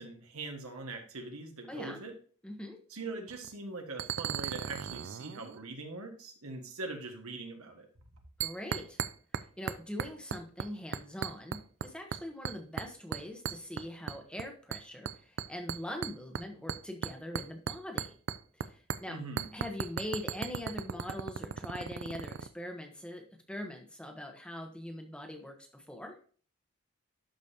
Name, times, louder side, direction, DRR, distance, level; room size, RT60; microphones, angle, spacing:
voice 1, 0.0-2.1 2.9-7.9 19.1-19.5, right 3 dB, 85° right, 4 dB, 1.6 m, -42 dB
voice 2, 1.7-2.0 2.4-2.8 8.4-9.0 9.6-18.1 18.5-19.2 19.5-26.2, left 1 dB, 5° left, 3 dB, 1.0 m, -42 dB
sound 1, 3.3-3.5 4.0-5.6 8.4-9.4 9.7-10.7 10.9-11.9 12.1-12.9 13.1-14.4 14.7-18.7 18.9-19.0 19.4-22.5, right 7 dB, 55° right, 0.3 m, -36 dB
12.0 x 5.1 x 2.8 m, 0.42 s
head